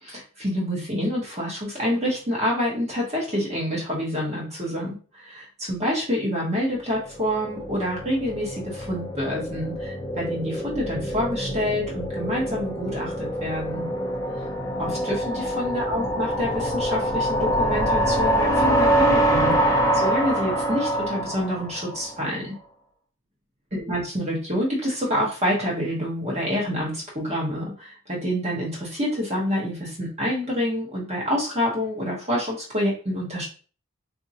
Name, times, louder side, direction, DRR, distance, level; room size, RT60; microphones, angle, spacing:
voice 1, 0.0-13.9 14.8-22.5 23.7-33.5, equal, 30° right, -4 dB, 1.1 m, -27 dB
sound 1, 6.9-22.2, right 1 dB, 15° left, 0.6 m, -25 dB
3.6 x 2.7 x 2.7 m, 0.38 s
head